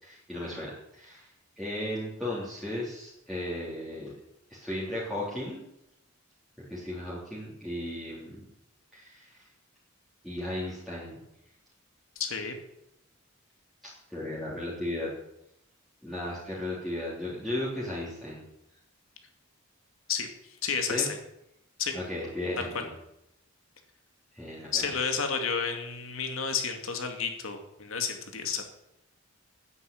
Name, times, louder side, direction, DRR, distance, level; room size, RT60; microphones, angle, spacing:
voice 1, 0.0-1.3 1.6-4.1 4.5-5.6 6.7-8.4 8.9-9.4 10.2-11.2 12.3-12.4 14.1-15.1 16.0-18.4 20.9-21.1 21.9-22.9 24.3-24.9, left 1 dB, ahead, -9 dB, 3.4 m, -35 dB
voice 2, 12.2-12.5 20.1-20.3 20.6-21.1 21.8-21.9 22.6-22.8 24.7-28.6, left 6 dB, 70° left, 4 dB, 2.4 m, -31 dB
10.0 x 9.6 x 8.7 m, 0.84 s
head